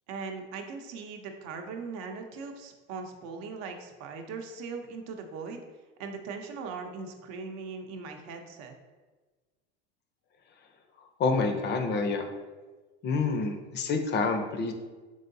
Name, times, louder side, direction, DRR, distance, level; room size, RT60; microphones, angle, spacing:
voice 1, 0.1-5.6 6.0-8.7, right 4 dB, 60° right, 4 dB, 0.7 m, -39 dB
voice 2, 11.0-12.3 13.0-14.7, left 4 dB, 35° left, 6 dB, 0.5 m, -28 dB
3.7 x 3.4 x 2.6 m, 1.3 s
supercardioid pair, 100°, 31 cm